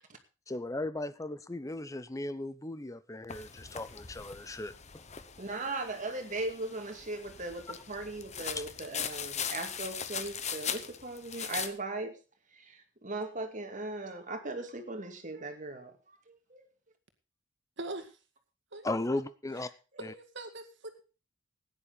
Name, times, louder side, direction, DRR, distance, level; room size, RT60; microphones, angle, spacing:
voice 1, 0.5-4.7 8.6-8.7 18.8-19.7 20.0-20.1, left 2 dB, 15° left, 0.7 m, -36 dB
sound 1, 3.3-11.7, left 8 dB, 35° left, 1.0 m, -40 dB
voice 2, 5.4-12.2 12.5-16.6, right 2 dB, 40° right, 2.3 m, -38 dB
voice 3, 17.8-18.2 18.7-19.2 20.0-21.0, right 2 dB, 60° right, 2.1 m, -42 dB
16.0 x 10.0 x 4.1 m
head